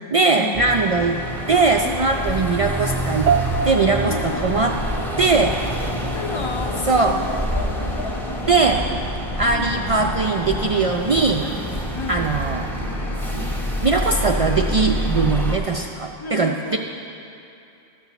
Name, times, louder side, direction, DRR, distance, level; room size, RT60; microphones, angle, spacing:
voice 1, 0.1-1.2 1.5-3.3 3.6-4.7 5.2-5.5 6.9-7.1 8.5-8.8 9.4-11.4 12.1-12.7 13.3-13.5 13.8-16.8, right 4 dB, 55° right, 2 dB, 0.3 m, -20 dB
sound 1, 0.5-15.6, equal, ahead, 0.7 m, -27 dB
voice 2, 1.8-2.3 4.0-4.5 6.1-7.3 7.7-9.1 9.4-9.7 11.4-12.3 16.2-16.8, left 4 dB, 40° left, 5 dB, 0.5 m, -33 dB
sound 2, 3.3-12.8, right 6 dB, 90° right, 0.9 m, -31 dB
sound 3, 6.0-16.0, left 2 dB, 75° left, 1.1 m, -39 dB
13.0 x 4.6 x 6.9 m, 2.7 s
omnidirectional pair, 1.1 m